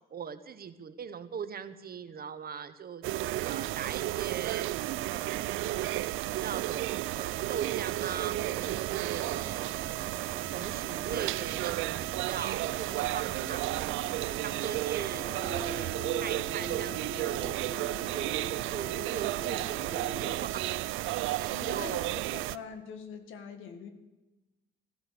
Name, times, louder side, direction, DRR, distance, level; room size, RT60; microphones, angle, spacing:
voice 1, 0.1-4.7 5.0-14.0 14.3-17.6 18.1-20.6 21.4-22.2, right 7 dB, 50° right, 11 dB, 1.2 m, -41 dB
sound 1, 3.0-22.6, right 16 dB, 85° right, 0.4 m, -33 dB
sound 2, 7.6-20.4, left 1 dB, 20° left, 2.1 m, -45 dB
voice 2, 21.5-23.9, left 6 dB, 85° left, 8 dB, 1.8 m, -43 dB
16.0 x 12.0 x 6.9 m, 1.1 s
cardioid pair, 90°, 20 cm